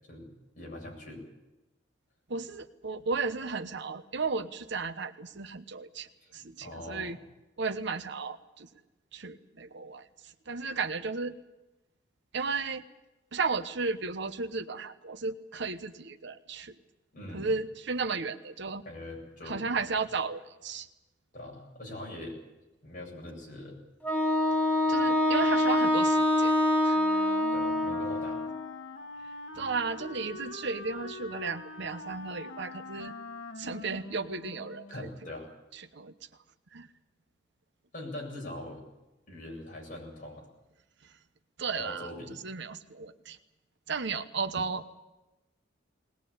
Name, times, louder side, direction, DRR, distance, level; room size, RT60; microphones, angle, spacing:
voice 1, 0.1-1.2 6.2-7.2 17.1-17.5 18.8-19.7 21.3-22.4 22.8-23.8 27.5-28.4 34.9-35.5 37.9-38.8 39.3-40.5 41.7-42.3, left 1 dB, 45° left, -1 dB, 7.9 m, -42 dB
voice 2, 2.3-6.1 6.3-7.2 7.6-8.7 9.1-11.3 12.3-12.8 13.3-16.7 17.3-18.8 19.5-20.9 24.9-26.5 26.8-27.2 29.5-33.1 33.6-35.1 35.7-36.1 36.7-36.9 41.6-42.1 42.4-43.4 43.9-44.9, right 4 dB, 65° right, 9 dB, 1.1 m, -34 dB
Wind instrument woodwind instrument, 24.0-28.7, left 1 dB, 10° left, 1.4 m, -25 dB
Wind instrument woodwind instrument 2, 26.9-35.2, left 3 dB, 75° left, 1.5 m, -44 dB
20.5 x 19.5 x 8.7 m, 1.0 s
head